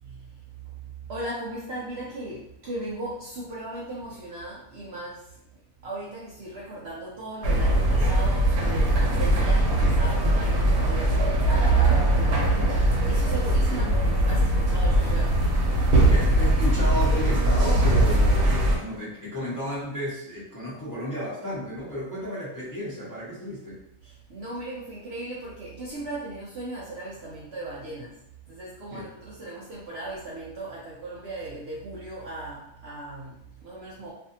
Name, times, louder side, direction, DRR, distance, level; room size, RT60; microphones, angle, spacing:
voice 1, 0.0-15.6 24.0-34.1, right 1 dB, 65° right, -5 dB, 0.6 m, -37 dB
sound 1, 7.4-18.8, right 1 dB, 85° right, 1.1 m, -21 dB
voice 2, 16.1-23.8 28.9-29.1, equal, 20° left, -9 dB, 0.6 m, -33 dB
2.6 x 2.4 x 2.6 m, 0.79 s
omnidirectional pair, 1.5 m